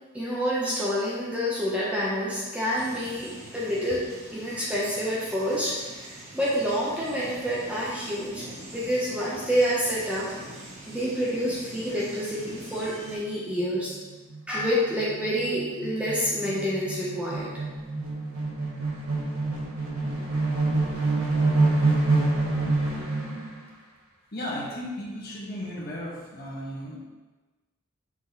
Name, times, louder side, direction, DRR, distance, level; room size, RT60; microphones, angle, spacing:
voice 1, 0.1-8.4 8.7-10.5 10.9-13.9 14.5-17.5, equal, 5° right, -7 dB, 0.9 m, -28 dB
sound 1, 2.7-13.2, right 1 dB, 30° right, 1.2 m, -44 dB
sound 2, 13.1-13.2 13.5-13.6 13.9-23.5, right 2 dB, 80° right, 1.2 m, -27 dB
voice 2, 24.3-27.0, equal, 45° left, -5 dB, 1.5 m, -35 dB
6.2 x 3.9 x 3.9 m, 1.2 s
head